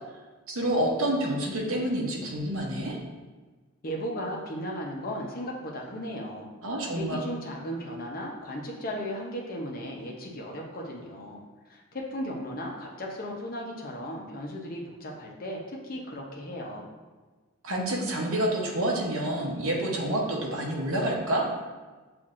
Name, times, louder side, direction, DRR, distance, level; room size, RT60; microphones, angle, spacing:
voice 1, 0.5-3.0 6.6-7.2 17.6-21.4, right 1 dB, 65° right, -1 dB, 0.9 m, -28 dB
voice 2, 3.8-6.5 6.9-11.4 11.7-16.9, equal, 40° left, -1 dB, 0.7 m, -36 dB
7.2 x 2.5 x 2.5 m, 1.3 s
head